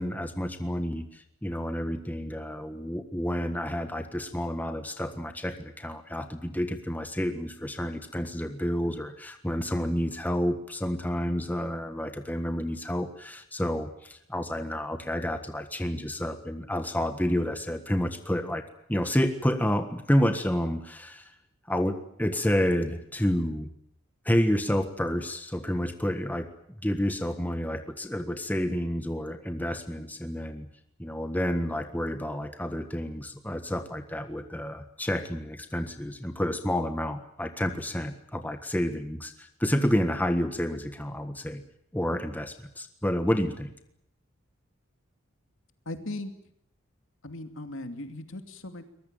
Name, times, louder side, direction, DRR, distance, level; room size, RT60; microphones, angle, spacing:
voice 1, 0.0-18.6 18.9-21.3 21.7-23.7 24.2-26.5 26.8-30.7 31.0-41.6 41.9-43.7, equal, 10° left, 7 dB, 1.5 m, -29 dB
voice 2, 45.9-46.3 47.2-48.8, left 2 dB, 70° left, 7 dB, 2.6 m, -38 dB
23.0 x 21.0 x 9.1 m, 0.75 s
head